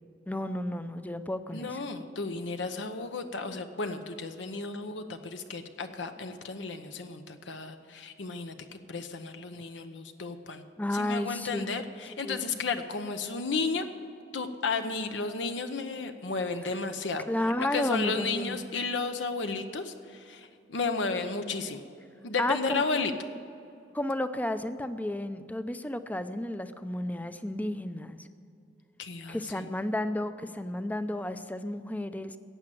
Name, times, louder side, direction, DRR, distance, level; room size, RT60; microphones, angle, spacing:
voice 1, 0.3-1.8 10.8-11.7 12.2-12.5 16.6-16.8 17.3-18.7 22.4-22.8 23.9-28.3 29.3-32.4, left 1 dB, 10° left, 11 dB, 0.5 m, -32 dB
voice 2, 1.5-8.5 8.9-10.6 10.9-13.9 14.3-17.2 17.6-21.8 22.2-23.1 29.0-29.4, left 4 dB, 80° left, 7 dB, 0.9 m, -33 dB
14.5 x 8.8 x 7.6 m, 2.6 s
head